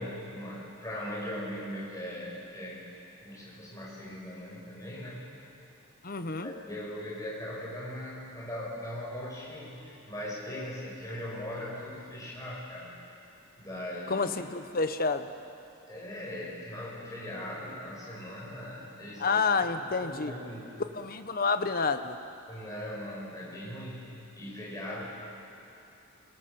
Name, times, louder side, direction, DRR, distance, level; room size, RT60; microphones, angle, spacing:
voice 1, 0.0-2.8 3.2-5.3 6.4-12.9 13.6-14.3 15.9-20.7 22.5-25.0, left 1 dB, 15° left, -5 dB, 6.3 m, -40 dB
voice 2, 6.0-6.5 14.1-15.3 19.2-20.3 20.9-22.2, left 4 dB, 45° left, 9 dB, 1.1 m, -29 dB
27.0 x 23.5 x 7.0 m, 2.7 s
head